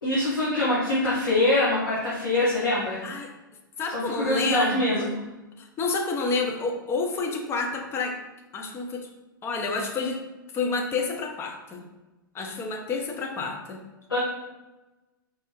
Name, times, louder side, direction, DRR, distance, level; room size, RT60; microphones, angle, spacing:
voice 1, 0.0-3.0 3.9-5.2 14.1-14.2, left 1 dB, 75° left, -9 dB, 1.5 m, -24 dB
voice 2, 3.8-5.1 5.6-8.2 8.5-9.1 9.4-10.2 10.5-11.8 12.3-13.8, left 4 dB, 20° left, 2 dB, 0.7 m, -29 dB
4.6 x 3.3 x 3.1 m, 1.1 s
figure-of-eight pair, 105°, 12 cm